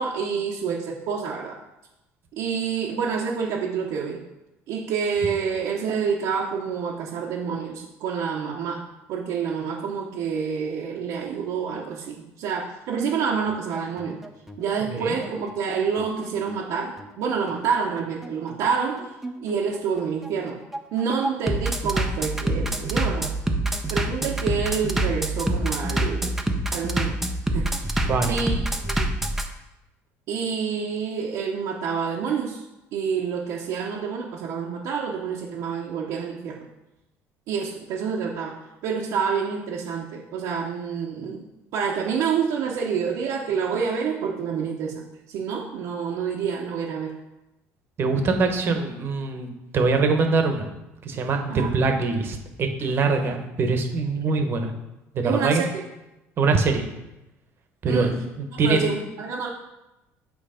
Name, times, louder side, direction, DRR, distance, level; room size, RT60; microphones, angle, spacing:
voice 1, 0.0-1.6 2.3-4.2 4.7-8.8 9.1-14.2 14.6-19.1 19.4-20.6 20.9-23.3 23.9-26.4 26.7-27.2 27.5-28.6 28.9-29.1 30.3-32.6 32.9-36.7 37.5-41.4 41.7-47.1 51.5-51.7 55.2-55.9 57.8-58.1 58.6-59.5, right 6 dB, 70° right, -3 dB, 0.9 m, -28 dB
Bass drum, 13.5-29.5, right 1 dB, 5° right, 0.6 m, -26 dB
voice 2, 28.0-28.3 48.0-49.5 49.7-50.7 51.0-54.7 55.1-55.6 56.4-56.8 57.8-58.8, right 4 dB, 40° right, 5 dB, 1.0 m, -23 dB
7.7 x 3.1 x 5.0 m, 0.95 s
cardioid pair, 120°, 6 cm